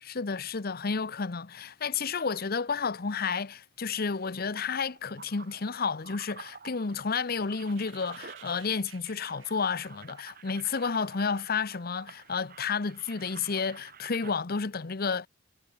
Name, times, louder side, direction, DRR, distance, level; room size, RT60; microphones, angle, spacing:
voice 1, 0.0-15.3, left 5 dB, 50° left, 0.8 m, -31 dB
sound 1, 3.9-9.0 9.3-14.3, right 6 dB, 50° right, 6.7 m, -50 dB
sound 2, 7.2-10.8, right 11 dB, 80° right, 4.1 m, -55 dB
head